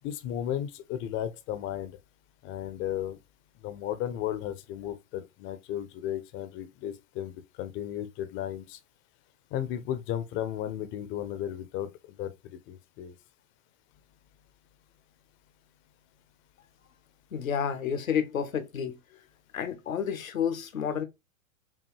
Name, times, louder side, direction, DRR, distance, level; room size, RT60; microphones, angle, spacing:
voice 1, 0.0-2.0 2.4-3.2 3.6-8.8 9.5-12.3 12.7-13.1, left 11 dB, 30° left, 0.6 m, -34 dB
voice 2, 17.3-19.2 19.5-21.1, left 8 dB, 80° left, 0.9 m, -30 dB
5.4 x 2.4 x 3.0 m
hypercardioid pair, 105°, 40 cm